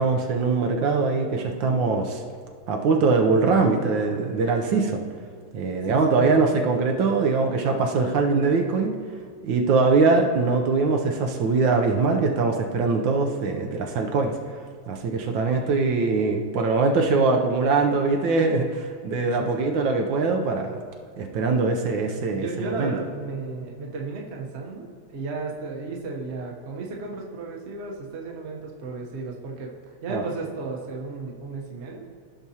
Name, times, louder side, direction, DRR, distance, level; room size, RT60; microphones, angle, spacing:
voice 1, 0.0-2.2 2.7-5.0 5.5-8.9 9.4-14.3 14.9-20.8 21.2-22.9 30.1-30.2, right 4 dB, 75° right, 3 dB, 1.3 m, -22 dB
voice 2, 5.9-6.2 19.2-19.7 22.3-29.7 30.0-32.1, right 3 dB, 45° right, -1 dB, 1.0 m, -34 dB
15.5 x 6.0 x 2.8 m, 2.1 s
omnidirectional pair, 2.2 m